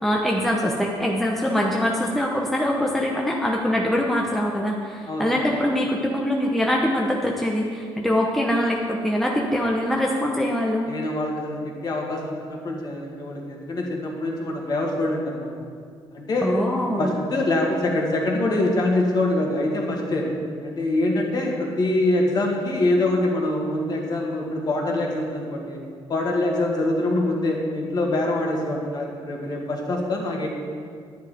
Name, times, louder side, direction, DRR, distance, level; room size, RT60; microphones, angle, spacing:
voice 1, 0.0-10.8 16.4-17.1, left 1 dB, ahead, -1 dB, 0.8 m, -23 dB
voice 2, 10.9-15.5 16.1-16.5 17.0-20.3 20.6-25.8 26.1-30.5, left 2 dB, 40° left, -1 dB, 2.1 m, -24 dB
10.5 x 10.0 x 5.1 m, 2.1 s
cardioid pair, 140°, 10 cm